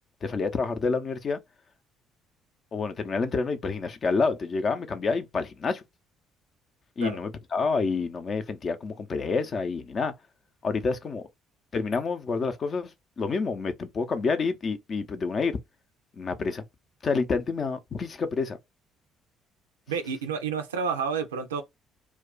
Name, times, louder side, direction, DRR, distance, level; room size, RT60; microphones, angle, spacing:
voice 1, 0.2-1.4 2.7-5.8 7.0-10.1 10.6-11.2 11.7-12.9 13.2-15.6 16.2-16.6 17.0-18.6, left 4 dB, 45° left, 0.6 m, -28 dB
voice 2, 19.9-21.6, right 6 dB, 90° right, 0.4 m, -30 dB
2.3 x 2.2 x 3.8 m
hypercardioid pair, 55°, 0 cm